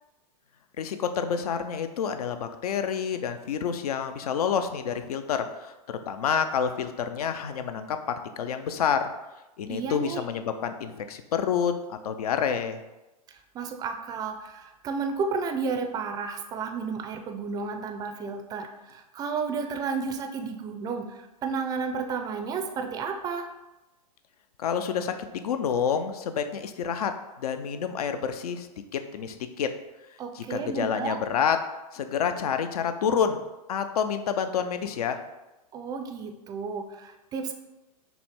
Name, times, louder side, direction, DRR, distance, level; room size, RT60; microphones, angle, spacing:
voice 1, 0.8-5.7 6.1-9.1 9.6-12.8 24.6-27.1 27.4-28.7 28.9-29.7 30.4-31.6 31.9-33.4 33.7-35.2, left 7 dB, 70° left, 8 dB, 0.5 m, -28 dB
voice 2, 9.7-10.2 13.5-23.5 30.2-31.2 35.7-37.5, right 5 dB, 20° right, 5 dB, 0.4 m, -32 dB
5.8 x 2.1 x 3.6 m, 1.0 s
hypercardioid pair, 110°, 20 cm